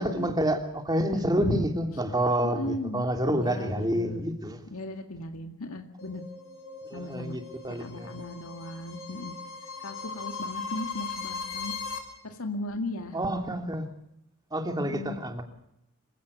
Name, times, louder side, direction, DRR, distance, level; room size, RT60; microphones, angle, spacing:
voice 1, 0.0-4.6 6.9-8.2 13.1-13.9 14.5-15.4, right 1 dB, 20° right, 4 dB, 3.1 m, -28 dB
voice 2, 2.4-4.3 4.7-6.2 6.9-7.4 7.7-9.3 9.8-11.7 12.2-13.2 14.8-15.1, left 1 dB, 85° left, 4 dB, 2.1 m, -36 dB
sound 1, 6.0-12.0, left 4 dB, 65° left, 6.2 m, -39 dB
27.0 x 16.5 x 8.5 m, 0.78 s
head